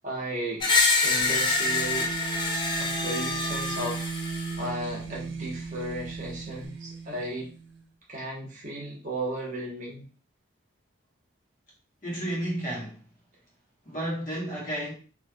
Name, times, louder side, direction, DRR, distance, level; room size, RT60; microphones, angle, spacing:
voice 1, 0.0-0.7 1.0-2.1 2.8-4.1 4.6-7.5 8.1-10.0, right 1 dB, 40° right, 1.0 m, -35 dB
Screech, 0.6-4.6, left 3 dB, 25° left, 0.4 m, -26 dB
sound 1, 1.2-7.8, right 5 dB, 80° right, 0.5 m, -37 dB
voice 2, 12.0-13.0 13.8-14.9, right 1 dB, 45° left, 1.2 m, -32 dB
3.2 x 2.5 x 2.2 m
head